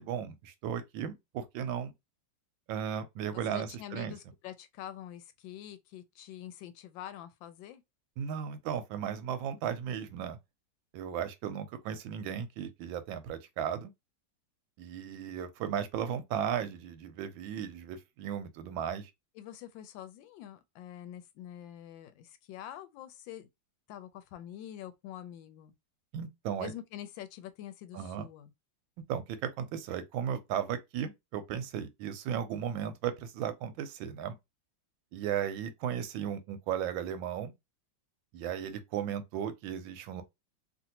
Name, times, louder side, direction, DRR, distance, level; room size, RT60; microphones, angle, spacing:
voice 1, 0.0-1.9 2.7-4.1 8.2-10.4 10.9-13.9 14.8-19.1 26.1-26.7 27.9-28.3 29.1-34.4 35.1-37.5 38.3-40.2, right 9 dB, 90° right, 1.4 m, -35 dB
voice 2, 3.3-7.8 19.4-23.5 23.9-25.7 26.6-28.5, left 11 dB, 80° left, 1.3 m, -46 dB
3.1 x 2.5 x 2.8 m
omnidirectional pair, 2.1 m